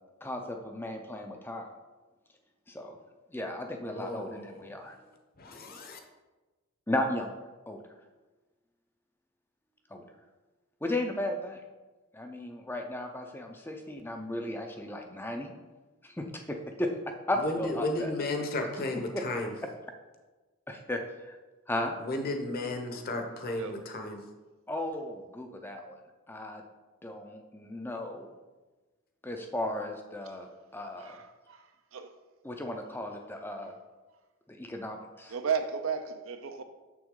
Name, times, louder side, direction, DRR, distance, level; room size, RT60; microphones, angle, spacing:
voice 1, 0.2-1.7 2.7-2.9 3.3-5.0 6.9-7.8 9.9-10.0 10.8-11.6 12.1-15.5 16.0-18.1 19.1-19.2 20.7-21.4 21.7-21.9 24.7-26.0 26.3-26.6 27.0-28.3 29.2-31.2 32.4-33.8 34.5-35.3, left 1 dB, 10° left, 0.5 m, -35 dB
voice 2, 3.9-4.8 5.4-6.0 17.3-19.5 22.0-24.2, left 2 dB, 40° left, 0.9 m, -34 dB
voice 3, 22.8-23.2 23.6-23.8 31.0-32.2 35.3-36.6, right 6 dB, 65° right, 0.6 m, -35 dB
7.0 x 6.1 x 3.7 m
head